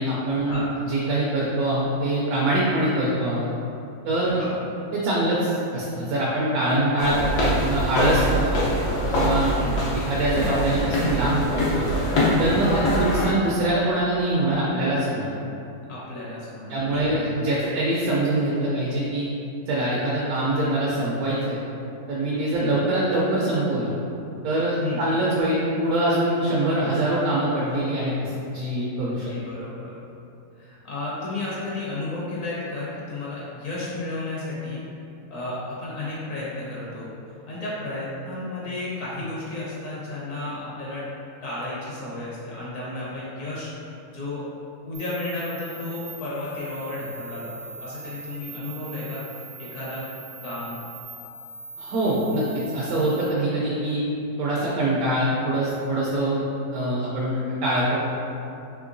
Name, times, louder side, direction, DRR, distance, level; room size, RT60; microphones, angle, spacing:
voice 1, 0.0-3.5 4.0-4.4 4.9-8.7 9.1-9.5 10.0-11.9 12.4-15.3 16.7-19.3 19.7-21.6 22.1-23.9 24.4-29.3 51.8-54.0 54.4-56.4 56.7-58.0, right 1 dB, 75° right, -6 dB, 1.0 m, -24 dB
sound 1, 7.0-13.3, equal, 90° left, 1.4 m, -24 dB
voice 2, 12.6-12.9 15.9-17.3 17.5-17.6 22.5-22.7 24.8-25.0 29.1-29.9 30.6-34.8 35.3-37.1 37.5-41.1 41.4-43.7 44.1-44.5 44.8-50.0 50.4-50.8, left 2 dB, 65° left, -7 dB, 1.1 m, -33 dB
sound 2, 44.9-53.3, right 4 dB, 55° right, 0.7 m, -41 dB
3.7 x 3.0 x 2.5 m, 2.7 s
omnidirectional pair, 1.6 m